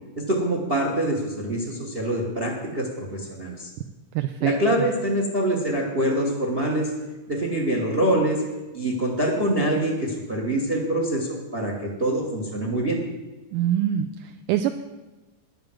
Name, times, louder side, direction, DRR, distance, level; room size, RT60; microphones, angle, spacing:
voice 1, 0.2-3.7 4.4-6.9 7.3-8.4 8.7-13.0, right 1 dB, 60° right, 0 dB, 0.6 m, -25 dB
voice 2, 4.2-4.6 13.5-14.8, right 11 dB, 80° right, 7 dB, 2.1 m, -25 dB
10.5 x 6.9 x 7.6 m, 1.1 s
omnidirectional pair, 3.8 m